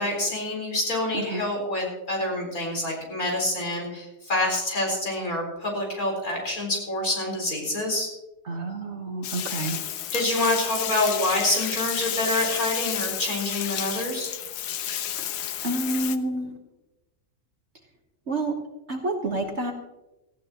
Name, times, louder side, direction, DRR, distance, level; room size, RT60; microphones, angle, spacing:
voice 1, 0.0-8.1 10.1-14.3, left 1 dB, 55° left, -1 dB, 4.6 m, -27 dB
voice 2, 8.5-9.8 15.2-15.3 15.6-16.6 18.3-18.6 18.9-19.7, right 2 dB, 45° right, 2 dB, 1.4 m, -29 dB
Bathtub (filling or washing), 9.2-16.2, left 10 dB, 75° left, 1.3 m, -31 dB
18.5 x 15.0 x 2.9 m, 1.0 s
omnidirectional pair, 1.8 m